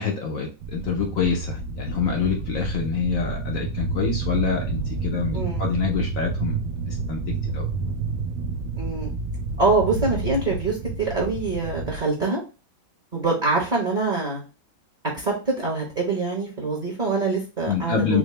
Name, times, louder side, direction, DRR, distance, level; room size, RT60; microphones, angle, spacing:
voice 1, 0.0-6.6 6.9-7.2 7.5-7.7 17.7-18.2, left 6 dB, 65° left, 1 dB, 0.8 m, -26 dB
sound 1, 0.6-12.0, right 3 dB, 70° right, 1.2 m, -29 dB
voice 2, 5.3-5.7 8.8-9.1 9.6-12.4 13.1-14.4 15.1-18.2, right 3 dB, 30° right, -4 dB, 0.8 m, -24 dB
4.9 x 2.1 x 3.2 m, 0.32 s
omnidirectional pair, 2.1 m